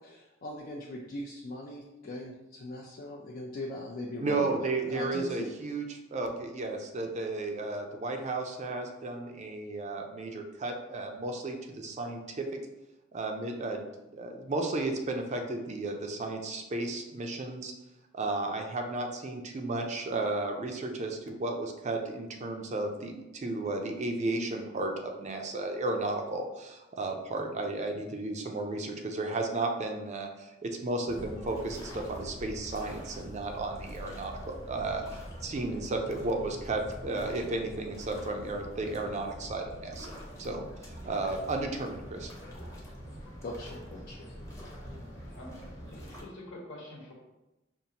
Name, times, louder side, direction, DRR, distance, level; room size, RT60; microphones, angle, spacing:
voice 1, 0.0-5.5 43.4-44.3, left 1 dB, 50° left, -3 dB, 0.4 m, -40 dB
voice 2, 4.2-12.5 13.1-13.8 14.1-17.7 18.1-40.1 40.4-42.3, right 2 dB, 35° right, 4 dB, 0.4 m, -34 dB
sound 1, 31.1-46.2, equal, 15° left, 0.8 m, -44 dB
voice 3, 45.9-47.1, left 1 dB, 70° left, -2 dB, 1.0 m, -46 dB
5.2 x 2.4 x 2.8 m, 0.98 s
head